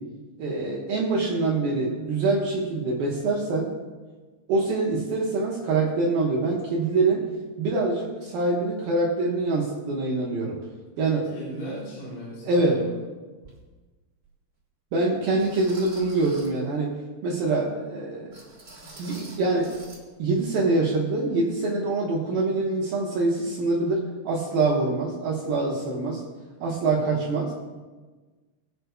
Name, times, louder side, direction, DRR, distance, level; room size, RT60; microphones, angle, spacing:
voice 1, 0.4-3.7 4.5-7.2 7.6-10.6 11.0-11.3 12.4-12.8 14.9-16.9 17.2-18.4 19.0-19.8 20.2-26.2 26.6-27.5, right 3 dB, 70° right, -4 dB, 2.2 m, -25 dB
voice 2, 11.3-13.0 26.8-27.2, equal, 45° left, -10 dB, 5.5 m, -38 dB
sound 1, 13.4-13.6 14.2-14.3 15.4-16.6 18.3-20.0 20.3-20.5 20.9-21.0, right 2 dB, 15° right, 2.5 m, -46 dB
22.5 x 8.0 x 2.3 m, 1.3 s
omnidirectional pair, 5.8 m